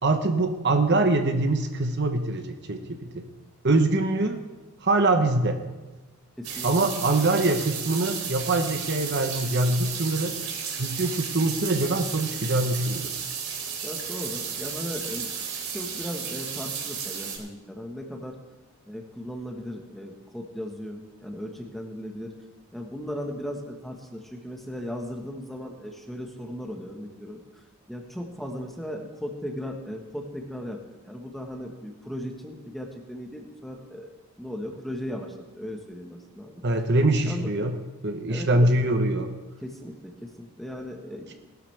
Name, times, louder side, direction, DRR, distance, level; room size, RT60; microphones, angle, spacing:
voice 1, 0.0-3.2 3.6-4.4 4.8-5.6 6.6-10.4 10.8-13.1 36.6-37.7 38.0-39.4, right 2 dB, 50° right, 5 dB, 1.1 m, -24 dB
voice 2, 6.4-6.7 13.8-18.4 18.9-22.3 22.7-27.4 27.9-34.1 34.4-36.6 37.2-37.5 38.3-38.7 39.6-41.3, equal, ahead, 1 dB, 1.4 m, -37 dB
sound 1, 6.4-17.4, right 7 dB, 70° right, 3.6 m, -33 dB
19.5 x 12.0 x 3.5 m, 1.2 s
head